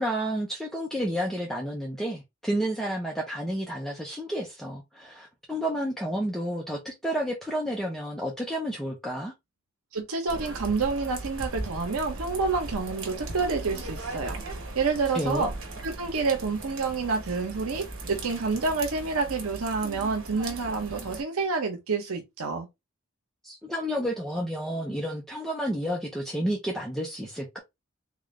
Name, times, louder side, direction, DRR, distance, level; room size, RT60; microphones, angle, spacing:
voice 1, 0.0-9.3 15.1-15.4 23.4-27.6, equal, ahead, 0.7 m, -31 dB
voice 2, 9.9-14.4 14.7-15.5 15.8-22.7, right 4 dB, 85° right, 0.8 m, -28 dB
sound 1, 10.3-21.2, right 2 dB, 65° right, 1.1 m, -38 dB
3.6 x 2.5 x 3.2 m
head